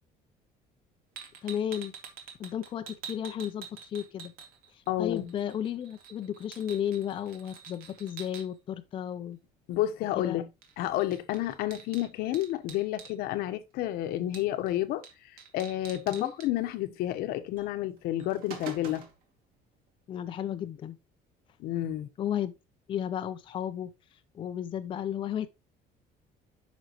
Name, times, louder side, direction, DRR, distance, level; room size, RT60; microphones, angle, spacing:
sound 1, 1.2-4.9 5.2-8.4 10.6-10.7 11.0-13.1 14.3-14.7 15.0-15.1 15.4-16.5 17.6-17.7 18.1-19.2, right 6 dB, 70° right, 2.3 m, -46 dB
voice 1, 1.4-1.9 2.4-4.3 4.7-9.4 10.2-10.4 16.1-16.3 20.1-21.0 22.2-22.5 22.9-23.9 24.3-25.5, left 10 dB, 35° left, 0.5 m, -33 dB
voice 2, 4.9-5.3 9.7-10.5 10.8-19.0 21.6-22.1, left 14 dB, 75° left, 1.0 m, -30 dB
9.3 x 6.1 x 3.0 m
cardioid pair, 160°, 16 cm